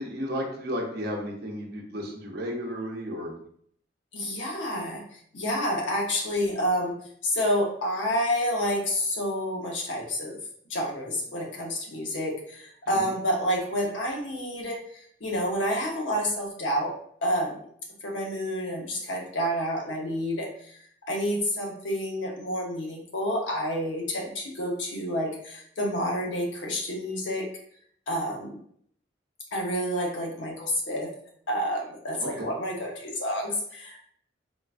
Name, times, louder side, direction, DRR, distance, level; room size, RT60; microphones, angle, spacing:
voice 1, 0.0-3.3 12.9-13.1 32.2-32.5, equal, 55° right, 0 dB, 0.7 m, -33 dB
voice 2, 4.1-7.0 7.2-10.4 10.7-16.9 17.2-17.6 18.0-20.7 21.1-27.5 28.1-28.6 29.5-31.1 31.5-34.0, equal, 85° left, -1 dB, 0.8 m, -29 dB
3.7 x 2.3 x 2.4 m, 0.63 s
head